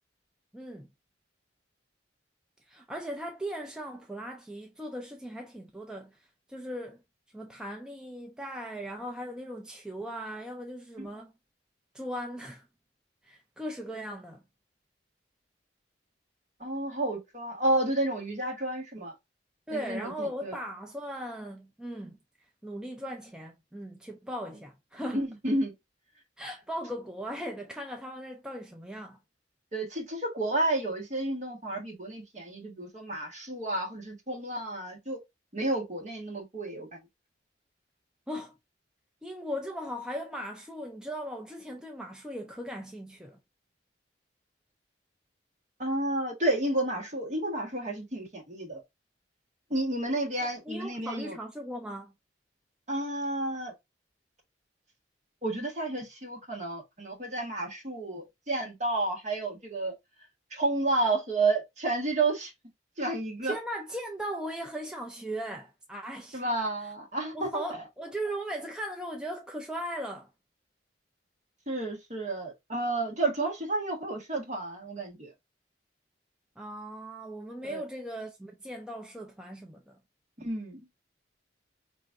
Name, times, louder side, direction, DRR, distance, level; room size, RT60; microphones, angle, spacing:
voice 1, 0.5-0.9 2.7-6.2 6.5-7.0 7.3-11.3 11.9-12.6 13.2-14.4 19.7-22.2 22.6-25.2 26.4-29.2 38.3-38.5 39.2-43.4 50.7-52.1 63.4-66.4 66.8-66.9 67.3-70.3 76.6-80.0, equal, 5° right, 0.4 m, -38 dB
voice 2, 16.6-19.1 19.7-20.5 25.1-25.7 29.7-35.2 35.5-36.9 45.8-48.8 49.7-51.4 52.9-53.7 55.4-59.9 60.5-62.5 63.0-63.5 66.3-67.8 71.7-75.3 77.6-77.8 80.4-80.8, right 2 dB, 40° right, 1.2 m, -31 dB
4.5 x 2.9 x 2.4 m
head